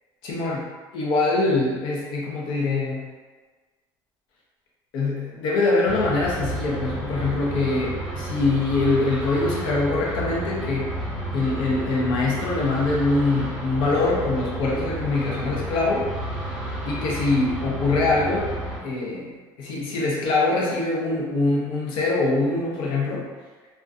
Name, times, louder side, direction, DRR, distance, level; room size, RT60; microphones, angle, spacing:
voice 1, 0.2-0.6 0.9-3.1 4.9-10.9 11.3-16.1 16.9-18.5 18.8-23.3, left 3 dB, 70° left, -4 dB, 0.7 m, -23 dB
sound 1, 5.8-18.8, right 1 dB, 5° right, 0.8 m, -31 dB
2.4 x 2.2 x 2.4 m, 1.4 s
cardioid pair, 145°, 9 cm